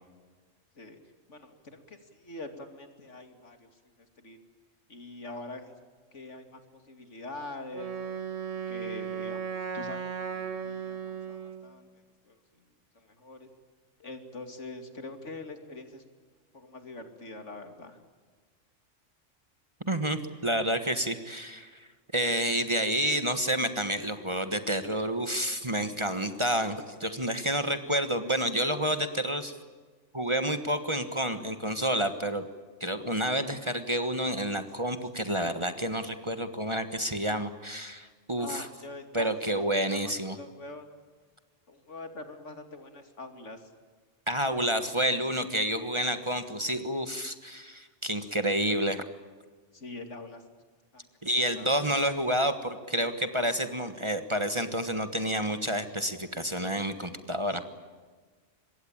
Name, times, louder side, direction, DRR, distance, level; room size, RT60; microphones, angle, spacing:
voice 1, 1.3-3.7 4.2-4.4 4.9-5.7 6.1-6.6 6.9-7.9 8.7-11.9 12.3-12.4 12.9-13.5 14.0-16.0 16.5-18.0 38.4-40.9 41.7-43.7 49.7-50.4 50.9-52.0, left 2 dB, 70° left, 7 dB, 3.0 m, -44 dB
Wind instrument woodwind instrument, 7.7-11.7, right 7 dB, 80° right, 2.4 m, -36 dB
voice 2, 19.8-21.9 22.1-29.6 30.1-32.4 32.8-38.7 39.1-40.4 44.3-49.0 51.2-57.6, equal, 25° right, 9 dB, 1.4 m, -29 dB
25.5 x 22.0 x 8.7 m, 1.5 s
omnidirectional pair, 1.3 m